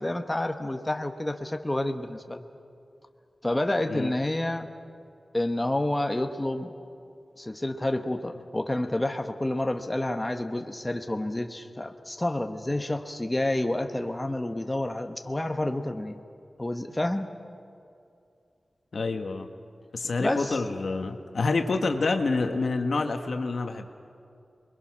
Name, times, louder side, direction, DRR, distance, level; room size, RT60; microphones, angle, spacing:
voice 1, 0.0-2.5 3.4-4.7 5.3-6.7 7.4-16.2 16.6-17.3 20.2-20.5, left 1 dB, 20° left, 6 dB, 1.0 m, -29 dB
voice 2, 18.9-19.5 19.9-23.9, left 3 dB, 75° left, 5 dB, 1.4 m, -27 dB
27.5 x 22.0 x 6.1 m, 2.5 s
wide cardioid pair, 90°, 0 cm